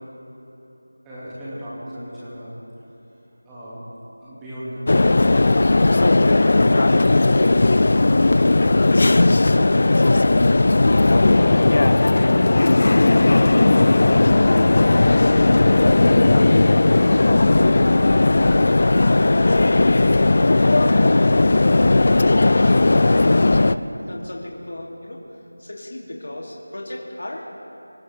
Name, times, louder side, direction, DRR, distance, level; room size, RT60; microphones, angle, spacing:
voice 1, 1.0-2.6 3.4-3.9 4.2-4.9, equal, 5° right, -11 dB, 2.3 m, -36 dB
sound 1, 4.9-23.8, left 2 dB, 35° left, 0.4 m, -16 dB
voice 2, 6.2-8.2 8.9-11.2 11.9-13.0 13.3-15.5 16.1-16.7 17.5-19.2 19.5-20.0 20.6-23.0 23.9-25.2 25.6-27.5, left 1 dB, 60° left, -2 dB, 2.8 m, -34 dB
sound 2, 16.9-22.9, left 1 dB, 20° left, 3.8 m, -37 dB
26.0 x 13.5 x 3.5 m, 2.9 s
figure-of-eight pair, 175°, 0 cm